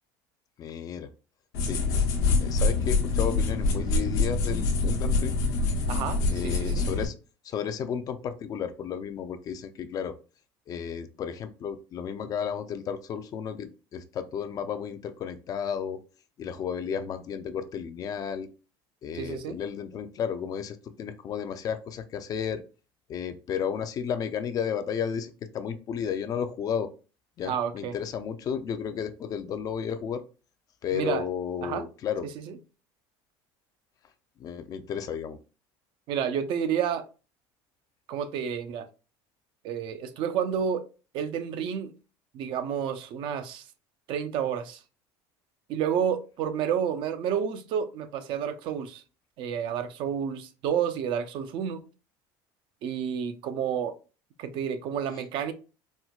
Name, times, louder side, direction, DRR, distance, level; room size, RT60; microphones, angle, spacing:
voice 1, 0.6-1.1 1.6-2.0 2.4-5.3 6.3-7.1 7.4-10.1 10.7-16.0 16.4-18.5 19.0-22.6 23.1-26.9 27.4-30.2 30.8-32.3 34.4-35.4, left 7 dB, 40° left, 0.4 m, -33 dB
sound 1, 1.5-7.1, left 3 dB, 85° left, 0.9 m, -25 dB
voice 2, 5.9-6.8 19.1-19.6 27.4-27.9 30.9-31.3 31.6-31.8 32.5-32.6 36.1-37.1 38.1-38.9 39.6-40.8 41.1-41.9 42.3-43.6 44.1-44.8 45.7-49.0 49.4-51.8 52.8-54.0 54.4-55.5, right 8 dB, 60° right, 0.5 m, -30 dB
4.3 x 2.1 x 2.3 m
cardioid pair, 125°, 10 cm